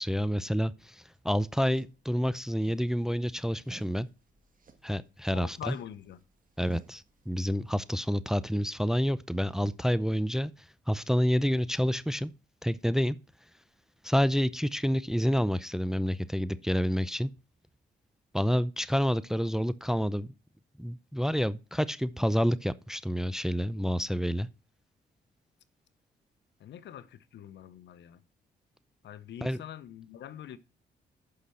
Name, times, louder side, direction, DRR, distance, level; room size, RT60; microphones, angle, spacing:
voice 1, 0.0-4.1 4.8-5.8 6.6-10.5 10.9-12.3 12.6-13.2 14.0-17.3 18.3-20.3 20.8-24.5 29.4-29.6, equal, 5° right, 0.6 m, -28 dB
sound 1, 1.2-7.8, right 4 dB, 45° right, 1.9 m, -57 dB
voice 2, 5.3-6.2 26.6-28.2 29.0-30.6, left 10 dB, 70° left, 0.8 m, -44 dB
8.5 x 5.8 x 6.3 m
supercardioid pair, 65°, 19 cm